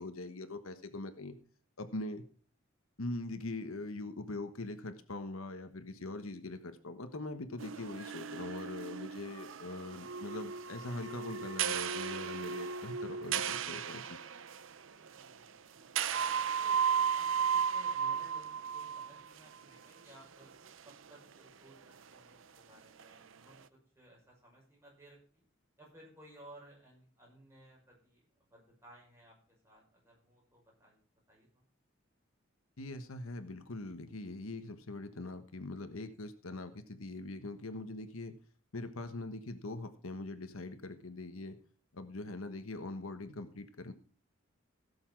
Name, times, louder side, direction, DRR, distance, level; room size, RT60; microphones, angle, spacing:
voice 1, 0.0-1.4 1.8-2.2 3.0-14.2 32.8-38.4 38.7-41.6 41.9-43.9, left 2 dB, 90° left, 9 dB, 1.3 m, -42 dB
sound 1, 7.6-14.7 15.1-15.3 16.0-19.3 19.5-19.6 20.7-20.8 23.0-23.1, right 7 dB, 70° right, 0.6 m, -35 dB
voice 2, 14.9-20.5 20.8-21.8 22.1-23.6 23.9-25.4 25.8-29.3 29.6-31.0 31.3-31.6, right 1 dB, 10° right, -2 dB, 5.9 m, -59 dB
16.5 x 7.1 x 4.7 m, 0.42 s
head